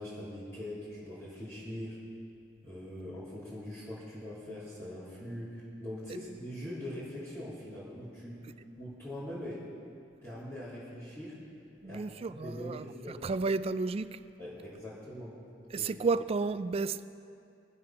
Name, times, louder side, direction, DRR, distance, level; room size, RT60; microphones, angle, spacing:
voice 1, 0.0-2.0 2.6-8.4 8.8-9.7 10.2-11.4 11.8-13.2 14.4-15.4 15.8-15.9, left 1 dB, 15° left, 3.3 m, -42 dB
voice 2, 11.8-14.2 15.7-17.0, right 4 dB, 30° right, 0.3 m, -32 dB
21.0 x 7.6 x 5.9 m
head